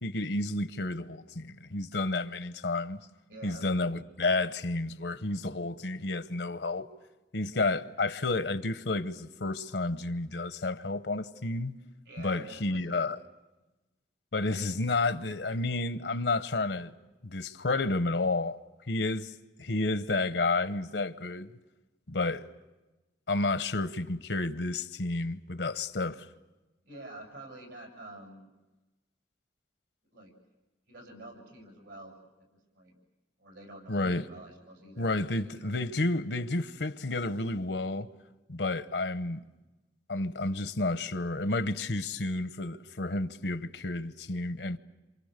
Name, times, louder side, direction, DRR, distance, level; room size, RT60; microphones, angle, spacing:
voice 1, 0.0-3.0 3.4-6.9 7.3-11.8 12.2-13.2 14.3-16.9 17.2-18.6 18.9-21.5 22.1-22.4 23.3-26.3 33.9-34.3 35.0-38.1 38.5-39.4 40.1-44.8, left 2 dB, 70° left, 1.0 m, -31 dB
voice 2, 3.3-3.7 12.0-13.2 26.8-28.5 30.1-30.3 30.9-32.2 32.7-33.0 33.4-35.7, right 1 dB, 80° right, 7.5 m, -48 dB
28.5 x 27.5 x 6.7 m
head